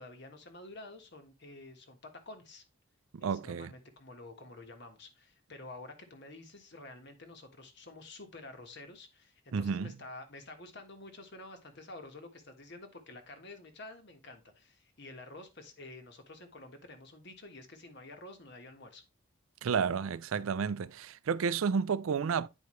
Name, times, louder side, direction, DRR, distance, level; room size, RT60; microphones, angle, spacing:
voice 1, 0.0-2.6 3.2-19.0, left 2 dB, 55° left, 1.4 m, -49 dB
voice 2, 3.1-3.7 9.5-9.9 19.6-22.5, right 6 dB, 80° right, 0.4 m, -31 dB
9.4 x 4.8 x 3.1 m
head